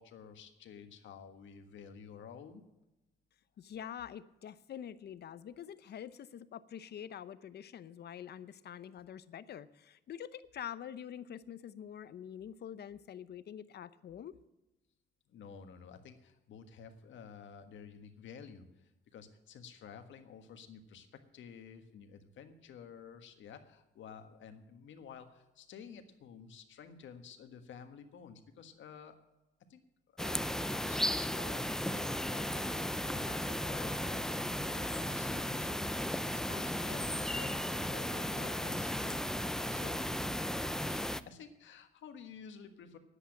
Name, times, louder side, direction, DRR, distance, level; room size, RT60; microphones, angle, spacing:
voice 1, 0.0-2.6 15.3-29.2 29.7-29.8 30.1-30.4 30.8-31.6 31.9-39.2 39.7-40.0 40.8-43.0, left 6 dB, 70° left, 7 dB, 1.5 m, -52 dB
voice 2, 3.6-14.3, left 9 dB, 55° left, 15 dB, 0.7 m, -46 dB
sound 1, 30.2-41.2, left 1 dB, 5° left, 0.5 m, -35 dB
10.0 x 8.3 x 8.7 m, 0.99 s
cardioid pair, 90°, 20 cm